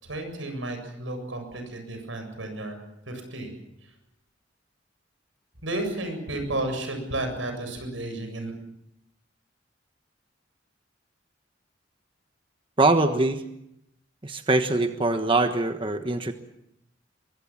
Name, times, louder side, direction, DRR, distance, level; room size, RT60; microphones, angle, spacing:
voice 1, 0.0-3.5 5.6-8.5, right 1 dB, 90° right, 6 dB, 7.7 m, -32 dB
voice 2, 12.8-13.4 14.2-16.3, right 2 dB, 25° right, 7 dB, 1.3 m, -23 dB
23.5 x 23.5 x 7.4 m, 0.81 s
head